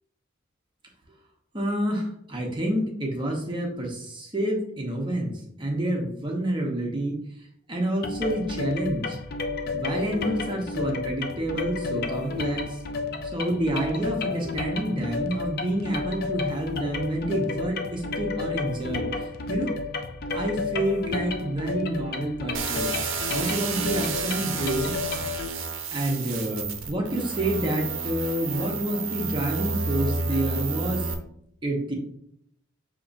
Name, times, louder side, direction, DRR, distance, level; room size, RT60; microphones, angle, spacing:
voice 1, 1.5-5.3 5.6-7.1 7.7-9.2 9.7-12.8 13.3-19.1 19.5-19.7 20.3-22.9 23.3-24.9 25.9-31.1 31.6-31.9, right 1 dB, 25° right, -1 dB, 0.9 m, -28 dB
sound 1, 8.0-25.5, left 3 dB, 50° left, 0.4 m, -32 dB
sound 2, 22.5-31.1, right 4 dB, 90° right, 0.7 m, -30 dB
6.6 x 2.9 x 2.6 m, 0.72 s
head